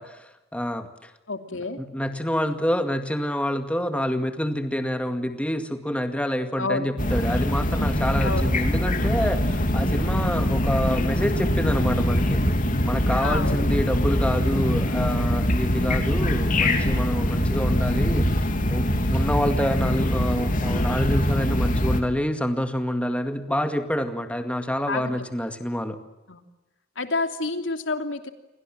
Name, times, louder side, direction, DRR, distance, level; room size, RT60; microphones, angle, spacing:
voice 1, 0.0-1.1 1.8-12.4 12.8-18.3 18.7-26.0, equal, 5° left, 7 dB, 2.1 m, -27 dB
voice 2, 1.3-1.8 6.6-6.9 8.2-8.5 13.2-13.6 24.9-25.1 26.3-26.4 27.0-28.3, left 3 dB, 80° left, 7 dB, 2.9 m, -28 dB
sound 1, 7.0-22.0, left 1 dB, 45° left, 3.1 m, -23 dB
29.5 x 23.5 x 7.7 m, 1.0 s
head